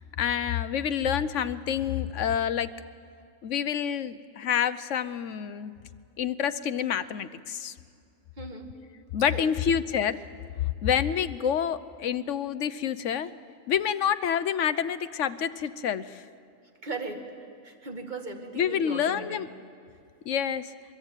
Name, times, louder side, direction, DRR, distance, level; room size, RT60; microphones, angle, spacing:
voice 1, 0.0-2.7 3.4-5.7 6.2-7.7 9.1-10.2 10.6-13.3 13.7-16.2 18.5-19.5 20.3-20.7, left 8 dB, 65° left, 12 dB, 1.1 m, -28 dB
voice 2, 8.4-8.7 9.3-9.5 16.8-17.2 17.6-19.4, right 3 dB, 35° right, 3 dB, 2.2 m, -37 dB
23.5 x 22.5 x 9.0 m, 2.4 s
omnidirectional pair, 1.4 m